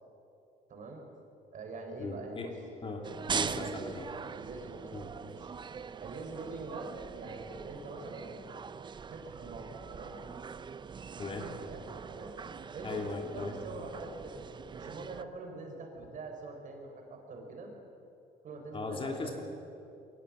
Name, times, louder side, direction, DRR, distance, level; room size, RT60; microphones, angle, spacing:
voice 1, 0.7-1.0 1.5-2.5 3.4-4.0 4.3-5.5 6.0-8.3 9.1-10.2 11.5-12.3 12.7-14.4 14.7-17.7 18.4-19.4, right 3 dB, 50° right, 2 dB, 4.5 m, -44 dB
voice 2, 2.0-2.5 2.8-4.1 4.9-5.1 11.2-11.5 12.8-13.5 18.7-19.4, left 3 dB, 30° left, 3 dB, 2.8 m, -38 dB
sound 1, 3.0-15.2, right 6 dB, 25° right, 0.6 m, -42 dB
22.5 x 17.0 x 7.5 m, 2.7 s
cardioid pair, 110°, 17 cm